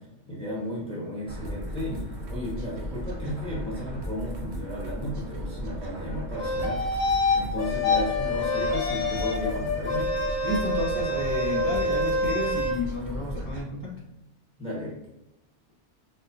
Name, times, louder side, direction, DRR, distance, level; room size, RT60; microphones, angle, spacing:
voice 1, 0.3-10.1 14.6-15.0, equal, 5° left, -7 dB, 1.1 m, -34 dB
sound 1, 1.2-13.6, equal, 70° right, 1.0 m, -36 dB
sound 2, 6.4-7.4 7.8-8.0 8.4-9.4 9.9-12.7, left 1 dB, 75° left, 1.4 m, -27 dB
sound 3, 7.6-12.0, left 7 dB, 25° left, 0.3 m, -32 dB
voice 2, 10.4-14.0, left 2 dB, 20° right, -6 dB, 0.7 m, -31 dB
4.3 x 3.0 x 2.6 m, 0.93 s
omnidirectional pair, 1.2 m